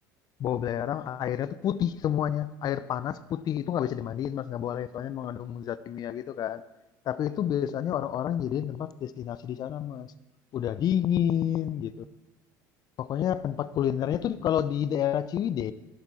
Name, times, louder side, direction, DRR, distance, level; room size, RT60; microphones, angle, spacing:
voice 1, 0.4-6.6 7.1-10.1 10.5-12.0 13.0-15.7, left 10 dB, 45° left, 0.5 m, -29 dB
12.0 x 11.0 x 4.2 m
hypercardioid pair, 75°, 10 cm